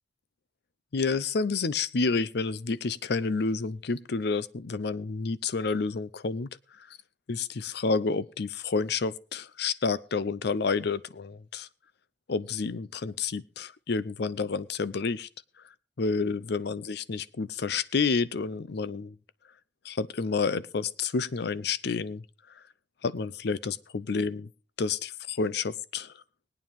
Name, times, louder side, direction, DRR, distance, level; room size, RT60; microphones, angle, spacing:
voice 1, 0.9-6.5 7.3-11.7 12.3-15.3 16.0-19.2 19.8-22.2 23.0-24.5 24.8-26.1, left 4 dB, 65° left, 17 dB, 0.6 m, -29 dB
20.0 x 9.2 x 3.5 m, 0.35 s
head